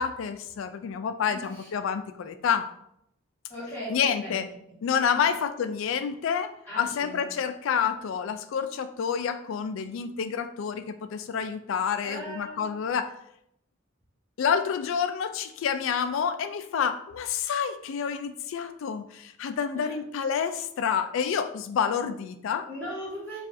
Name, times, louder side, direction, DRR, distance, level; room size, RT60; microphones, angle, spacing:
voice 1, 0.0-2.7 3.9-4.5 4.8-13.1 14.4-22.7, left 7 dB, 70° left, 10 dB, 0.3 m, -28 dB
voice 2, 1.3-1.7 3.5-4.4 4.7-4.8 5.1-5.3 6.7-7.3 12.0-12.7 19.7-20.0 22.7-23.4, equal, 10° left, -9 dB, 1.5 m, -39 dB
4.6 x 2.4 x 2.6 m, 0.75 s
head